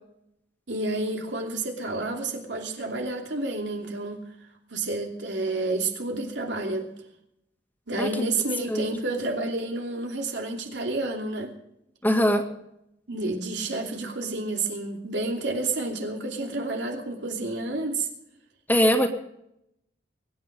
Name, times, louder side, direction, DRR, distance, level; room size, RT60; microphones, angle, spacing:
voice 1, 0.7-4.2 4.7-6.9 7.9-11.5 13.1-18.1, right 2 dB, 90° right, 2.8 m, -30 dB
voice 2, 12.0-12.4 18.7-19.1, equal, 10° left, 1.9 m, -21 dB
23.5 x 9.6 x 5.2 m
head